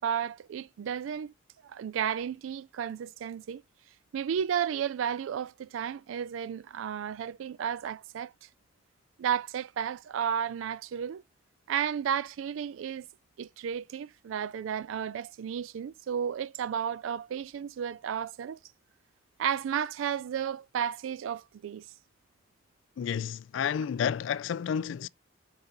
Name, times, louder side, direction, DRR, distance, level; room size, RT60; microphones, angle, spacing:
voice 1, 0.0-1.3 1.6-3.6 4.1-8.3 9.2-11.2 11.7-13.1 13.4-18.6 19.4-21.9, right 8 dB, 80° right, 0.3 m, -33 dB
voice 2, 23.0-25.1, left 8 dB, 70° left, 0.3 m, -30 dB
5.3 x 3.9 x 5.7 m
head